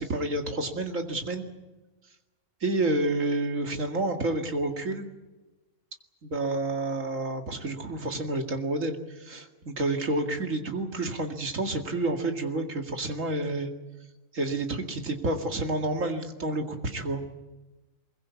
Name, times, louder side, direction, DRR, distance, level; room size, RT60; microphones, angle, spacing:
voice 1, 0.0-1.4 2.6-5.1 6.2-13.7 14.3-17.3, right 2 dB, 70° right, 4 dB, 2.6 m, -29 dB
24.0 x 22.0 x 8.4 m, 1.1 s
omnidirectional pair, 1.4 m